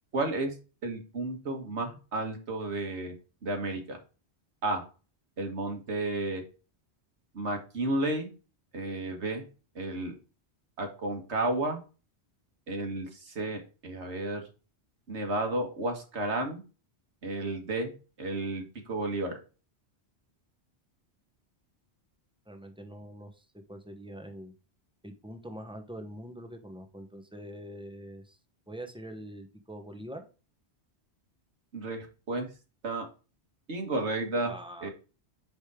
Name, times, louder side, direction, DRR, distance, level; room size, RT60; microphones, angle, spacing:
voice 1, 0.1-0.6 0.8-3.2 3.4-4.0 4.6-4.8 5.4-6.4 7.3-8.3 8.7-9.4 9.8-10.2 10.8-11.8 12.7-14.4 15.1-16.6 17.2-17.9 18.2-19.4 31.7-32.5 32.8-33.1 33.7-34.5 34.8-34.9, right 2 dB, 90° right, 3 dB, 1.9 m, -32 dB
voice 2, 22.5-23.3 23.7-24.5 25.0-28.4 28.7-30.3 34.4-34.9, equal, 5° right, 6 dB, 1.0 m, -44 dB
5.3 x 5.2 x 4.8 m, 0.34 s
omnidirectional pair, 1.1 m